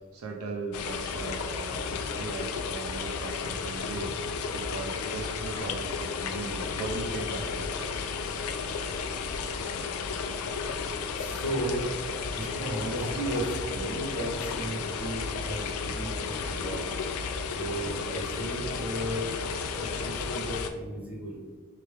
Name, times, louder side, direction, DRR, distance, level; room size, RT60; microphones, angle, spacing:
voice 1, 0.1-4.2 4.5-7.8, right 3 dB, 75° right, 1 dB, 0.5 m, -38 dB
sound 1, 0.7-20.7, left 5 dB, 80° left, 0.4 m, -33 dB
voice 2, 11.2-11.9 12.3-16.8 17.6-19.2 19.7-21.4, right 1 dB, 5° right, -7 dB, 1.2 m, -34 dB
3.4 x 3.3 x 3.2 m, 1.5 s
head